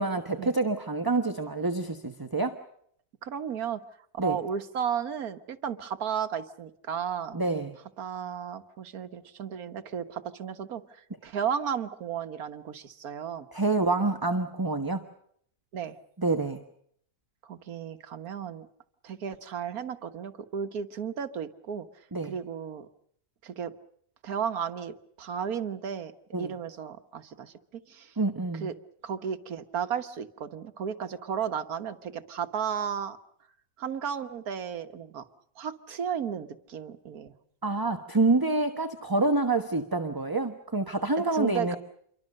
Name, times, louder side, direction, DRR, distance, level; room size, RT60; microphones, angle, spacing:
voice 1, 0.0-2.6 4.2-4.4 7.3-7.7 13.5-15.0 16.2-16.6 22.1-22.3 26.3-26.5 28.2-28.7 37.6-41.8, right 3 dB, 15° right, 6 dB, 1.1 m, -27 dB
voice 2, 3.2-3.8 4.2-7.4 8.0-13.5 15.7-16.0 17.5-18.7 19.0-21.9 22.2-22.9 23.4-23.7 24.2-26.1 26.4-28.1 28.6-28.7 29.0-33.2 33.8-35.3 35.6-37.4 41.3-41.8, right 7 dB, 70° right, 9 dB, 1.7 m, -34 dB
27.5 x 23.5 x 6.5 m, 0.67 s
omnidirectional pair, 1.6 m